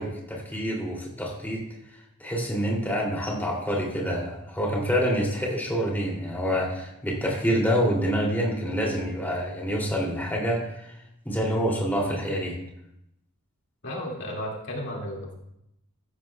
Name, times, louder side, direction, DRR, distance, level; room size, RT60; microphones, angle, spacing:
voice 1, 0.0-1.6 2.2-10.9 11.2-12.6, equal, 10° left, -3 dB, 2.8 m, -27 dB
voice 2, 13.8-15.3, equal, 55° left, -2 dB, 2.3 m, -33 dB
14.5 x 12.5 x 2.3 m, 0.80 s
head